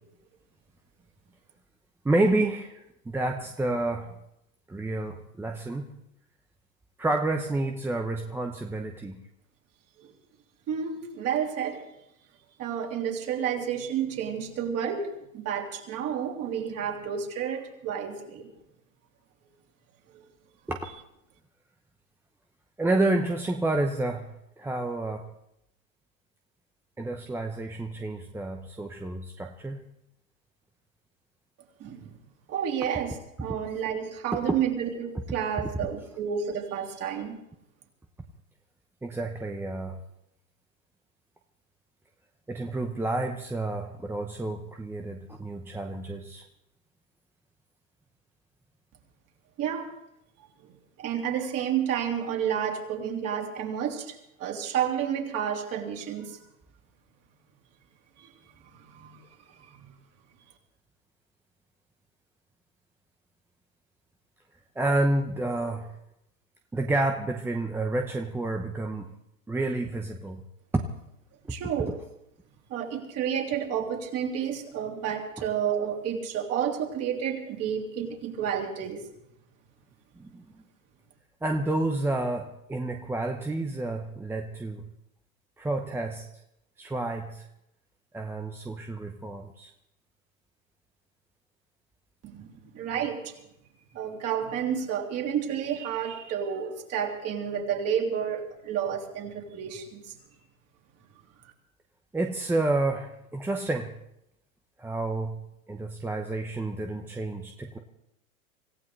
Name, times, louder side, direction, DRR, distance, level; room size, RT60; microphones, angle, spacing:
voice 1, 2.0-4.1 4.7-6.0 7.0-9.2 20.7-20.8 22.8-25.3 27.0-29.8 39.0-40.0 42.5-46.4 64.8-65.9 66.7-69.1 69.5-70.4 70.7-70.8 80.2-80.4 81.4-84.9 85.6-86.3 86.8-87.5 88.1-89.7 102.1-103.9 104.8-105.4 105.7-107.8, right 2 dB, 5° right, 3 dB, 0.9 m, -29 dB
voice 2, 10.7-11.8 12.6-18.5 20.1-20.2 31.8-32.1 32.5-37.4 49.6-49.9 51.0-56.4 58.2-58.3 58.7-59.2 71.5-72.0 72.7-79.0 92.3-93.3 93.9-100.1, right 8 dB, 35° right, 1 dB, 3.2 m, -30 dB
26.0 x 15.5 x 3.4 m, 0.81 s
hypercardioid pair, 115°, 42 cm